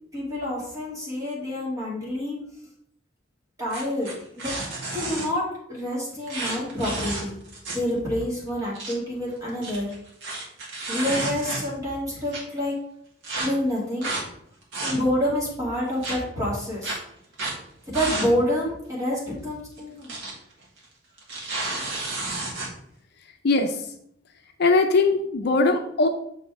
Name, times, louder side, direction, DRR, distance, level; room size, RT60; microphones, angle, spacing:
voice 1, 0.1-2.4 3.6-4.5 4.9-7.3 7.7-9.9 10.9-12.7 13.4-14.1 14.8-17.0 17.9-20.3, left 1 dB, 15° right, -6 dB, 2.4 m, -28 dB
sound 1, 3.7-5.3 6.3-7.9 8.2-8.3 8.6-8.9 9.5-11.9 12.3-12.4 13.2-13.5 14.0-14.2 14.6-15.3 16.0-16.2 16.8-17.0 17.3-17.6 17.9-18.3 18.6-18.7 19.8-20.3 20.6-20.8 21.2-22.7, right 2 dB, 70° right, 1.7 m, -31 dB
voice 2, 23.4-23.8 24.6-26.1, left 3 dB, 55° left, 5 dB, 0.6 m, -20 dB
6.7 x 4.3 x 3.6 m, 0.71 s
head